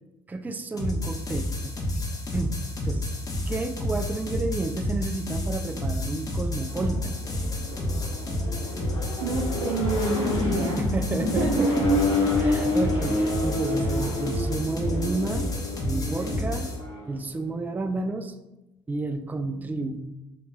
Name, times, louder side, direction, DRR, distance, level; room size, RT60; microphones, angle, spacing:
voice 1, 0.3-2.0 2.3-2.6 2.8-3.1 3.5-7.1 10.8-12.0 12.4-15.5 15.8-16.7 17.1-18.4 18.9-20.1, right 3 dB, 10° right, 8 dB, 0.3 m, -31 dB
sound 1, 0.8-16.8, left 1 dB, 25° left, 0.8 m, -30 dB
Accelerating revving vroom, 6.6-17.0, left 1 dB, 80° left, 0.9 m, -28 dB
voice 2, 9.2-12.0 12.5-12.6 16.2-16.4, right 2 dB, 80° right, -3 dB, 0.6 m, -30 dB
5.2 x 2.8 x 2.3 m, 0.96 s
hypercardioid pair, 55°, 14 cm